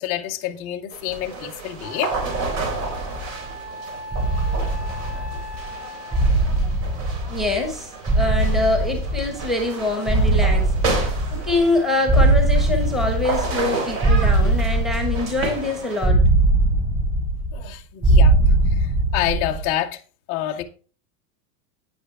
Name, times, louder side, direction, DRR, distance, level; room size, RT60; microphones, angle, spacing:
voice 1, 0.0-2.1 17.5-18.4 18.8-20.0 20.3-20.6, left 13 dB, 15° left, 0.4 m, -27 dB
sound 1, 0.9-16.1, right 3 dB, 55° right, 3.8 m, -32 dB
Wind instrument woodwind instrument, 1.8-6.5, left 2 dB, 70° right, 6.0 m, -38 dB
sound 2, 2.1-3.5 4.1-5.7 6.1-7.7 8.1-9.7 10.1-11.7 12.1-13.7 14.0-15.6 16.0-17.7 18.0-19.7, right 2 dB, 20° right, 3.9 m, -20 dB
voice 2, 7.3-10.7 11.3-16.2, left 2 dB, ahead, 1.2 m, -24 dB
9.9 x 9.2 x 3.4 m
supercardioid pair, 165°, 49 cm